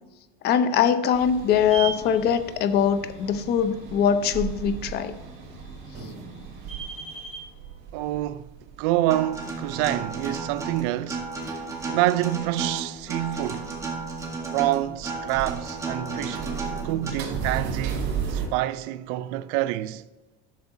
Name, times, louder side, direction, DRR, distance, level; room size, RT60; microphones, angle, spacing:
voice 1, 0.4-5.1, left 8 dB, 50° left, 0.7 m, -22 dB
sound 1, 1.1-18.5, right 6 dB, 50° right, 2.8 m, -36 dB
voice 2, 7.9-8.5 8.8-11.3 11.9-13.7 14.5-16.4 16.8-20.0, right 15 dB, 85° right, 0.4 m, -27 dB
Acoustic guitar, 9.1-17.1, right 3 dB, 15° right, 1.6 m, -33 dB
11.5 x 6.9 x 2.7 m
cardioid pair, 135°, 21 cm